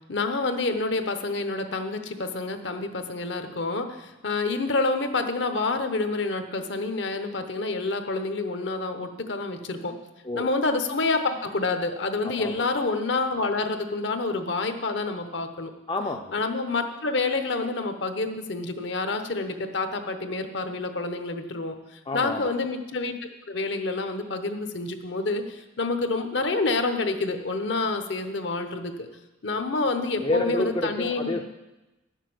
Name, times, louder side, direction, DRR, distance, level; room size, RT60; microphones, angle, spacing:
voice 1, 0.1-9.9 10.3-15.7 16.3-23.1 23.5-29.1 29.4-31.4, left 3 dB, 65° left, 7 dB, 1.0 m, -28 dB
voice 2, 15.9-16.4 22.1-22.5 30.2-31.4, left 2 dB, 25° left, 3 dB, 0.5 m, -28 dB
11.0 x 6.6 x 7.8 m, 1.0 s
head